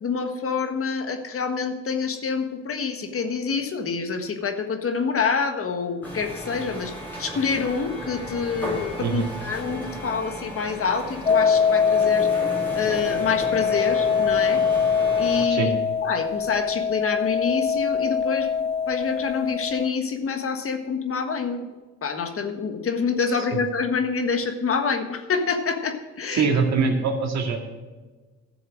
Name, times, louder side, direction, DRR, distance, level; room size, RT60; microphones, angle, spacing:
voice 1, 0.0-6.9 7.2-12.5 12.7-14.6 15.2-18.5 18.9-21.6 22.0-26.5, left 5 dB, 45° left, 6 dB, 1.5 m, -27 dB
sound 1, 6.0-15.4, equal, 5° left, 3.8 m, -35 dB
voice 2, 9.0-9.3 15.5-15.7 26.3-27.7, right 5 dB, 65° right, 3 dB, 2.2 m, -23 dB
sound 2, 11.3-19.9, left 6 dB, 20° left, 0.3 m, -23 dB
12.5 x 7.0 x 6.2 m, 1.3 s
cardioid pair, 90°, 30 cm